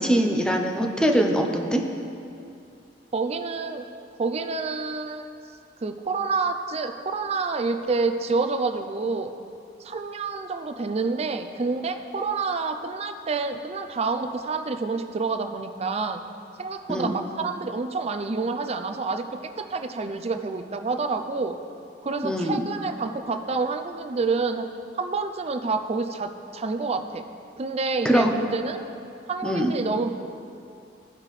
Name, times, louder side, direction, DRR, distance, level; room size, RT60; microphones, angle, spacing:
voice 1, 0.0-1.8 16.9-17.1 22.2-22.6 28.0-28.3 29.4-29.7, equal, 5° left, 3 dB, 0.7 m, -22 dB
voice 2, 3.1-3.8 4.2-5.3 5.8-9.3 9.8-16.2 16.6-19.2 19.7-21.5 22.0-24.7 25.0-27.2 27.6-28.8 29.3-30.1, right 4 dB, 35° right, 7 dB, 0.5 m, -28 dB
15.5 x 5.8 x 3.2 m, 2.6 s
head